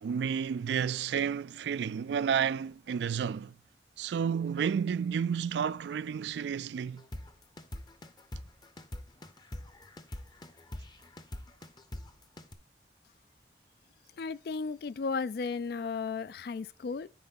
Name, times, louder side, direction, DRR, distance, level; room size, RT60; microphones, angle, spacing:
voice 1, 0.0-3.5 4.0-7.0, right 7 dB, 75° right, 0.3 m, -31 dB
sound 1, 7.0-12.5, left 1 dB, 25° left, 0.7 m, -44 dB
voice 2, 14.2-17.1, left 4 dB, 55° left, 0.3 m, -34 dB
10.0 x 4.6 x 4.0 m
head